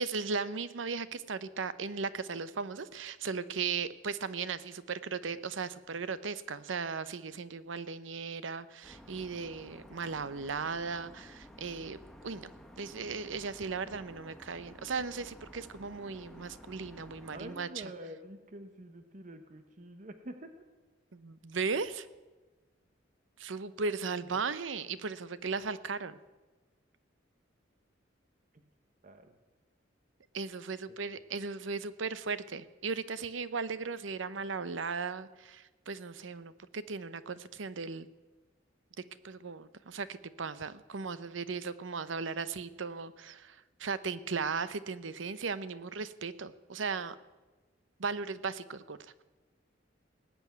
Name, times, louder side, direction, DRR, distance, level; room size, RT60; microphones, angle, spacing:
voice 1, 0.0-12.0 12.2-12.5 12.8-17.7 21.1-22.1 23.4-26.2 30.3-38.1 39.2-47.1 48.0-49.2, right 5 dB, 85° right, 15 dB, 0.7 m, -37 dB
sound 1, 8.8-17.6, equal, 5° left, 1.0 m, -53 dB
voice 2, 17.3-20.7 24.3-24.4 28.5-28.6 29.0-29.4 30.9-31.1, right 1 dB, 40° right, 7 dB, 1.0 m, -47 dB
19.0 x 7.1 x 9.3 m, 1.2 s
head